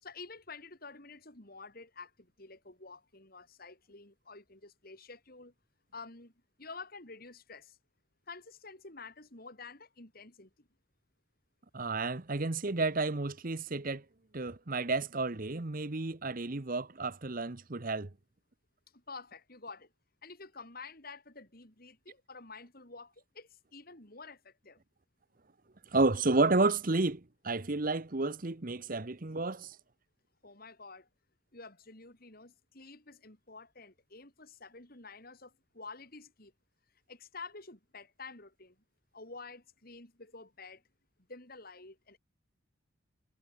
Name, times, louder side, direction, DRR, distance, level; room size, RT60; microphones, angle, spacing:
voice 1, 0.0-5.5 5.9-6.3 6.6-7.8 8.3-10.7 18.9-19.9 20.2-24.8 30.4-31.1 31.5-36.5 37.1-38.8 39.1-40.8 41.3-42.2, left 4 dB, 45° left, 3.6 m, -49 dB
voice 2, 11.7-14.0 14.3-18.1 25.9-29.8, right 3 dB, 40° right, 1.0 m, -31 dB
head